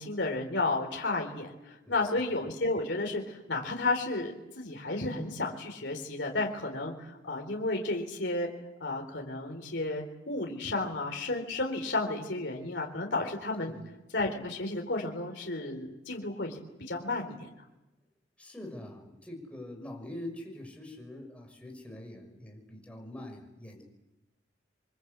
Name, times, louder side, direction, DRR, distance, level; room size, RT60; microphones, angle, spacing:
voice 1, 0.0-8.5 8.8-13.8 14.1-16.6 16.9-17.4, left 2 dB, 70° left, 2 dB, 4.0 m, -32 dB
voice 2, 18.4-23.8, left 1 dB, 5° left, 1 dB, 6.2 m, -44 dB
29.5 x 23.5 x 8.3 m, 0.98 s
head